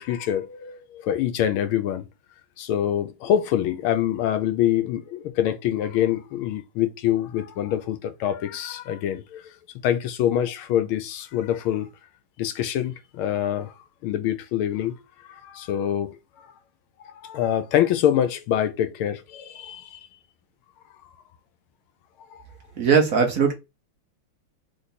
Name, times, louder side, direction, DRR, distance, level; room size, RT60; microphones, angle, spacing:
voice 1, 0.0-2.1 2.6-9.5 9.8-11.9 12.4-13.7 14.0-15.0 15.3-16.2 17.2-20.0 22.3-22.4, left 11 dB, 80° left, 1.6 m, -25 dB
voice 2, 22.8-23.5, right 6 dB, 55° right, 1.0 m, -19 dB
3.8 x 3.3 x 4.1 m
omnidirectional pair, 2.3 m